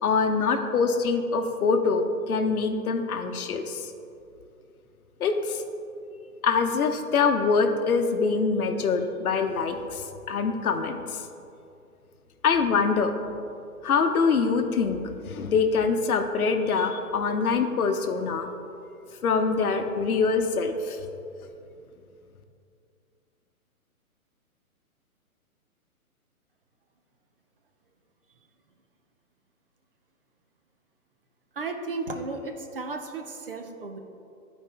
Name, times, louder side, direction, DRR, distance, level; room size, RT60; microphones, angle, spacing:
voice 1, 0.0-3.9 5.2-5.6 6.4-11.2 12.4-13.1 13.8-18.5 19.2-21.0, left 5 dB, 70° left, 6 dB, 0.8 m, -24 dB
voice 2, 31.6-34.0, right 3 dB, 40° right, 4 dB, 0.5 m, -34 dB
11.0 x 4.4 x 3.3 m, 2.6 s
hypercardioid pair, 155°, 45 cm